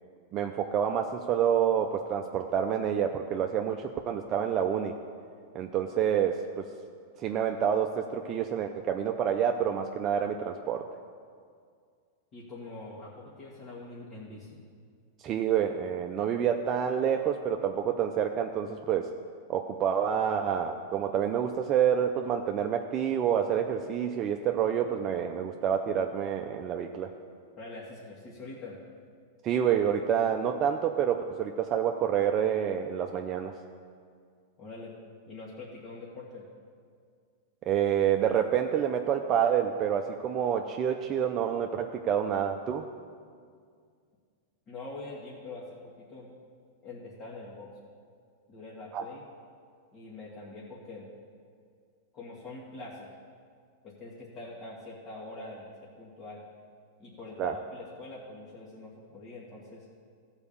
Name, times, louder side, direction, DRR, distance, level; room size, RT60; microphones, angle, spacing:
voice 1, 0.3-4.9 5.5-6.7 7.2-10.9 15.2-19.1 19.5-27.1 29.4-33.5 37.7-42.9 48.9-49.0 57.4-57.5, right 8 dB, 35° right, 4 dB, 0.5 m, -28 dB
voice 2, 12.3-14.6 27.6-28.8 34.6-34.9 35.3-36.4 44.7-46.3 46.8-47.7 48.5-49.2 49.9-51.1 52.1-53.1 53.8-56.4 57.0-59.9, left 2 dB, 35° left, -6 dB, 2.0 m, -44 dB
14.5 x 4.9 x 7.0 m, 2.1 s
hypercardioid pair, 130°, 0 cm